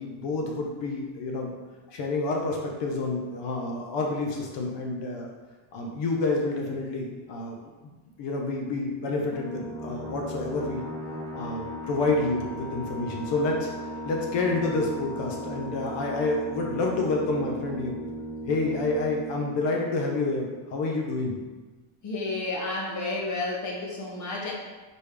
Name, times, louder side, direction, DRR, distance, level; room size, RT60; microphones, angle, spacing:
voice 1, 0.0-1.5 1.9-5.3 5.7-7.6 7.8-10.8 11.3-13.7 14.0-18.0 18.5-21.3, left 3 dB, 60° left, 0 dB, 0.8 m, -28 dB
sound 1, 9.3-20.6, right 1 dB, 5° left, 0.4 m, -37 dB
voice 2, 22.0-24.5, left 2 dB, 35° left, -2 dB, 1.0 m, -31 dB
4.3 x 3.3 x 3.3 m, 1.3 s
cardioid pair, 155°, 49 cm